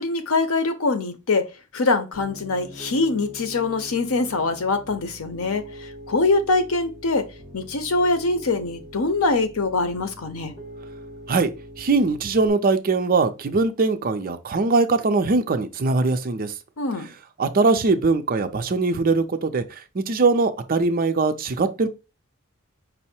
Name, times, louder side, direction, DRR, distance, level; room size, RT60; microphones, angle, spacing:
voice 1, 0.0-1.5 1.7-5.6 6.1-7.3 7.5-10.5 16.8-17.1, left 3 dB, 90° left, 0.7 m, -23 dB
Piano, 2.1-12.5, equal, 60° left, 1.8 m, -43 dB
voice 2, 11.8-16.5 17.4-19.6 19.9-21.9, right 3 dB, 45° right, 0.5 m, -21 dB
5.4 x 2.1 x 4.2 m
head